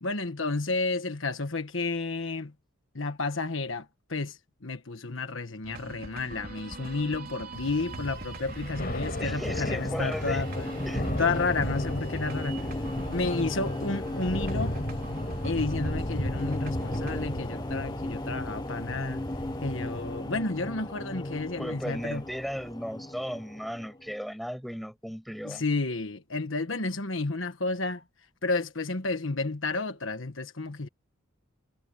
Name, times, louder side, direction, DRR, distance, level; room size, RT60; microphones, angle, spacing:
voice 1, 0.0-2.5 2.9-10.8 11.2-12.7 13.1-14.7 15.4-19.2 19.6-22.2 25.4-28.0 28.4-30.9, left 3 dB, 65° left, 1.4 m, -31 dB
sound 1, 5.6-22.7, right 2 dB, 45° right, 4.0 m, -44 dB
Thunder / Rain, 7.5-20.4, equal, 45° left, 6.0 m, -35 dB
sound 2, 8.9-24.2, left 1 dB, 20° left, 1.0 m, -36 dB
voice 2, 9.2-10.4 10.9-11.0 21.6-25.6, equal, ahead, 6.2 m, -36 dB
head